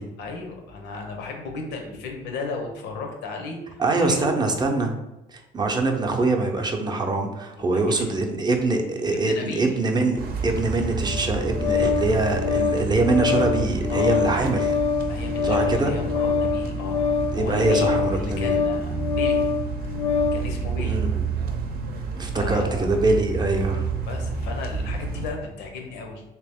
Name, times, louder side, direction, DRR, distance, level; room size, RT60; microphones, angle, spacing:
voice 1, 0.2-4.3 7.6-8.1 9.2-9.8 13.9-14.3 15.1-17.0 17.3-19.4 19.9-20.0 20.3-21.0 22.2-22.8 24.0-26.2, left 3 dB, 85° left, 3 dB, 0.8 m, -34 dB
voice 2, 3.8-4.9 5.3-14.7 15.4-15.9 17.3-18.6 20.8-21.2 22.2-23.9, right 2 dB, 25° right, 3 dB, 0.6 m, -23 dB
sound 1, 10.2-25.3, right 4 dB, 65° right, 0.7 m, -30 dB
Organ, 11.0-20.5, left 6 dB, 35° left, 0.4 m, -25 dB
3.4 x 2.9 x 3.4 m, 0.97 s
cardioid pair, 110°, 17 cm